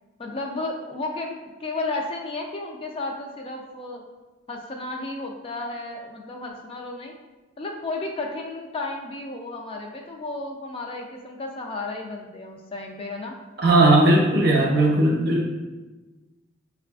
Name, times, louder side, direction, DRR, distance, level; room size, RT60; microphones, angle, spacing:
voice 1, 0.2-4.0 4.5-7.1 7.6-13.4 14.4-14.9, left 2 dB, 30° left, 1 dB, 0.3 m, -33 dB
voice 2, 13.6-15.5, right 2 dB, 55° right, 0 dB, 0.6 m, -17 dB
5.6 x 2.3 x 2.3 m, 1.2 s
head